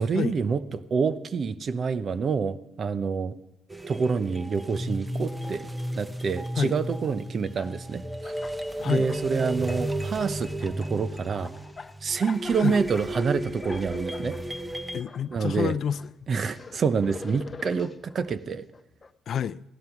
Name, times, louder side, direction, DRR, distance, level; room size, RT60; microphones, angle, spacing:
voice 1, 0.0-3.4 3.9-5.7 5.9-8.3 8.8-11.5 12.0-14.4 15.3-15.7 16.3-18.6, right 5 dB, 50° right, 0.8 m, -27 dB
sound 1, 3.7-15.0, right 1 dB, 10° right, 0.9 m, -34 dB
sound 2, 7.0-7.1 7.4-8.6 8.9-9.9 10.2-15.4 15.8-19.1, left 4 dB, 35° left, 0.8 m, -45 dB
voice 2, 14.9-16.1 19.3-19.6, left 8 dB, 60° left, 0.4 m, -28 dB
17.0 x 11.5 x 6.0 m
cardioid pair, 90°, 0 cm